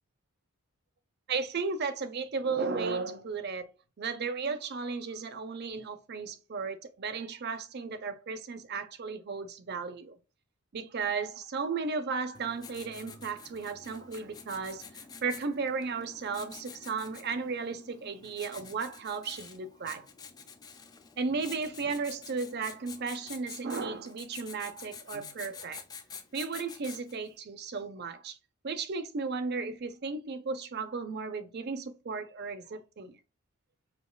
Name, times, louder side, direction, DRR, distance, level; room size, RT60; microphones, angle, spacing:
voice 1, 1.3-3.7 4.0-10.2 10.7-14.9 15.2-20.1 21.2-25.8 26.3-28.4 28.6-33.1, right 4 dB, 45° right, 0.5 m, -35 dB
Writing, 12.3-27.3, left 6 dB, 15° left, 0.3 m, -48 dB
5.1 x 2.3 x 2.2 m
head